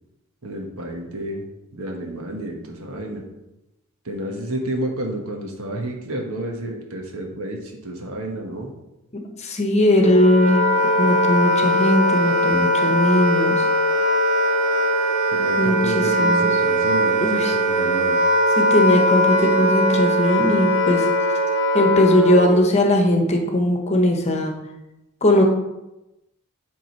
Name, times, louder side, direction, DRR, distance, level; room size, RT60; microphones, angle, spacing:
voice 1, 0.4-1.4 1.7-3.2 4.0-8.7 15.3-18.2, right 1 dB, 75° right, 1 dB, 1.4 m, -30 dB
voice 2, 9.1-10.7 11.0-13.6 15.6-16.5 17.2-17.5 18.6-21.1 21.7-24.5 25.2-25.4, left 1 dB, 30° left, 3 dB, 1.1 m, -19 dB
Wind instrument woodwind instrument, 9.9-22.6, equal, 30° right, 2.4 m, -20 dB
9.2 x 3.8 x 4.5 m, 0.94 s
head